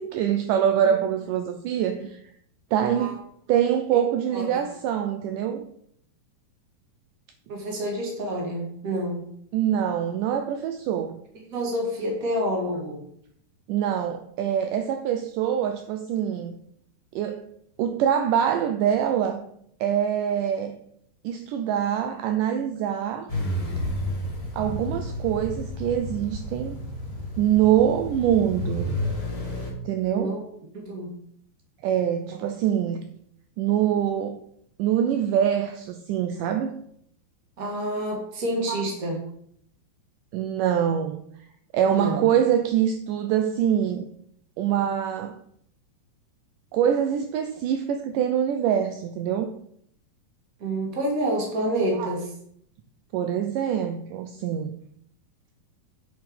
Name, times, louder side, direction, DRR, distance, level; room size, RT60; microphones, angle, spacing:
voice 1, 0.0-2.2 2.7-3.2 3.5-5.6 9.5-11.2 13.7-16.5 17.1-17.5 17.8-19.4 19.8-20.8 21.2-23.3 24.5-26.8 27.4-28.9 29.8-30.4 31.8-33.0 33.6-34.4 34.8-36.8 40.3-41.2 41.7-44.1 44.6-45.4 46.7-49.5 52.0-52.1 53.1-54.7, right 9 dB, 85° right, 1.9 m, -24 dB
voice 2, 2.8-3.2 3.9-4.0 4.3-4.6 7.5-9.3 11.5-13.0 30.1-30.4 30.7-31.1 37.6-39.2 41.9-42.3 50.6-52.3, right 1 dB, 30° right, 1.8 m, -28 dB
sound 1, 23.3-29.7, left 1 dB, 15° left, 1.3 m, -31 dB
8.1 x 6.5 x 5.2 m
omnidirectional pair, 4.4 m